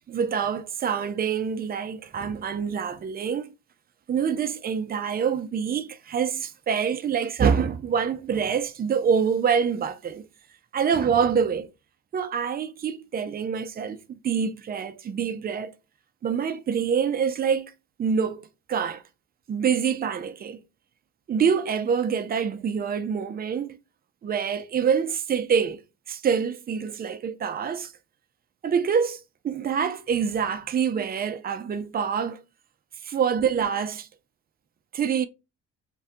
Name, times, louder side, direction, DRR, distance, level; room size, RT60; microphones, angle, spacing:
voice 1, 0.1-3.5 4.1-10.2 10.7-11.7 12.1-15.7 16.2-17.7 18.0-18.4 18.7-19.0 19.5-20.6 21.3-23.8 24.2-25.8 26.1-27.9 28.6-29.2 29.4-32.4 33.0-34.1 34.9-35.3, right 7 dB, 30° right, 0.4 m, -26 dB
2.6 x 2.2 x 3.5 m
cardioid pair, 90°, 30 cm